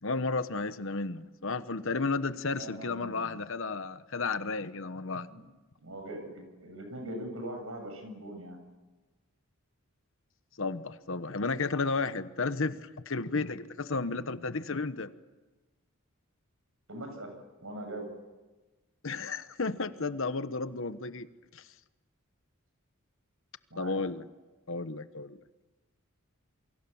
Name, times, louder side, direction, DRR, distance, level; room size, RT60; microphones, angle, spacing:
voice 1, 0.0-5.3 10.6-15.1 19.0-21.3 21.5-21.6 23.8-24.2 24.7-25.4, left 3 dB, 60° left, 12 dB, 1.1 m, -33 dB
voice 2, 2.5-3.4 5.3-5.5 5.8-8.7 16.9-18.2 23.7-24.0, right 1 dB, 70° right, 5 dB, 7.6 m, -41 dB
28.5 x 24.0 x 7.2 m, 1.2 s
head